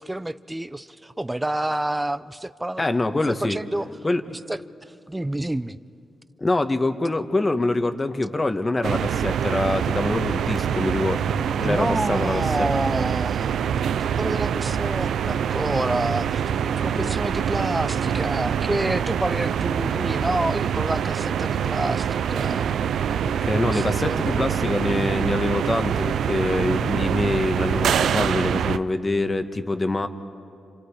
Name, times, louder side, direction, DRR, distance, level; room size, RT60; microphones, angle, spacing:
voice 1, 0.0-3.9 4.3-5.8 11.6-13.6 14.0-22.7 23.6-24.8, right 1 dB, 15° right, 14 dB, 0.7 m, -29 dB
voice 2, 2.8-3.6 4.0-4.2 6.4-12.7 16.9-17.1 23.4-30.1, left 2 dB, 30° left, 8 dB, 1.4 m, -25 dB
sound 1, 8.8-28.8, right 8 dB, 80° right, 0.5 m, -25 dB
30.0 x 27.0 x 5.0 m, 2.5 s
supercardioid pair, 55°, 0 cm